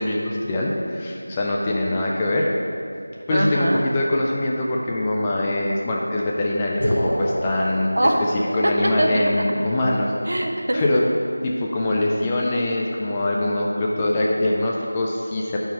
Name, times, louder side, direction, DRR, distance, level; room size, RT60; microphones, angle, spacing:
voice 1, 0.0-2.5 3.3-7.9 8.5-10.1 10.7-11.0 11.4-15.6, left 1 dB, 15° left, -3 dB, 0.4 m, -23 dB
voice 2, 3.3-3.8 7.9-9.2 10.3-10.8, right 1 dB, 65° right, 1 dB, 0.9 m, -22 dB
sound 1, 6.8-8.7, equal, 40° left, 1.8 m, -26 dB
8.7 x 4.6 x 4.0 m, 2.5 s
figure-of-eight pair, 175°, 0 cm